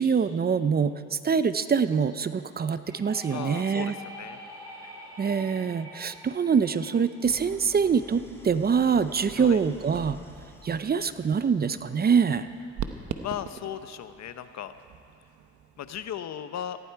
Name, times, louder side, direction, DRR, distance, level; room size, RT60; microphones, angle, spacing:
voice 1, 0.0-3.9 5.2-10.2 10.6-12.5, right 6 dB, 30° right, 12 dB, 0.6 m, -25 dB
sound 1, 2.8-8.5, equal, 10° right, 3.7 m, -45 dB
voice 2, 3.3-4.4 9.4-9.6 13.2-14.7 15.8-16.8, left 10 dB, 60° left, 11 dB, 0.8 m, -36 dB
Idling, 7.2-11.5, left 2 dB, 10° left, 1.5 m, -49 dB
sound 2, 8.5-16.2, right 8 dB, 75° right, 1.0 m, -43 dB
18.5 x 15.0 x 4.7 m, 2.4 s
cardioid pair, 90°, 30 cm